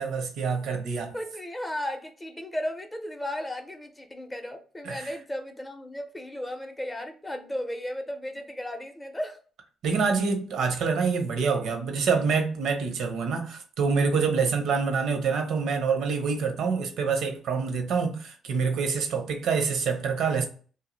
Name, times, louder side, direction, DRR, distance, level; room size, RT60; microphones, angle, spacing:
voice 1, 0.0-1.1 4.8-5.1 9.8-20.5, right 5 dB, 80° right, 0.7 m, -26 dB
voice 2, 1.1-9.4 14.3-14.6, left 1 dB, 15° left, 0.5 m, -35 dB
2.6 x 2.0 x 3.8 m
cardioid pair, 90°, 0 cm